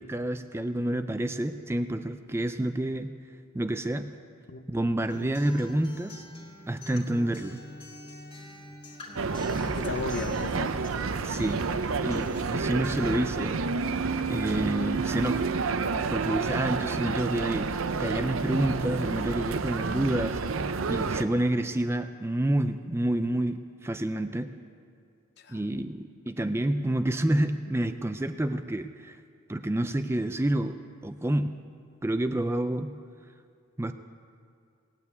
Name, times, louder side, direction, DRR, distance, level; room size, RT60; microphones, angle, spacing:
voice 1, 0.0-3.1 3.5-4.1 4.7-6.3 6.7-7.6 11.2-11.6 12.0-13.6 14.3-15.5 16.1-24.5 25.5-29.2 29.5-31.5 32.0-32.9 33.8-33.9, right 1 dB, 10° right, 9 dB, 0.4 m, -29 dB
Acoustic guitar, 5.1-13.1, left 1 dB, 25° left, 2.1 m, -46 dB
sound 1, 9.2-21.2, right 4 dB, 70° right, 0.6 m, -29 dB
voice 2, 9.4-10.8 25.4-25.6, left 3 dB, 50° left, 10 dB, 0.7 m, -36 dB
18.5 x 9.4 x 8.3 m, 2.3 s
head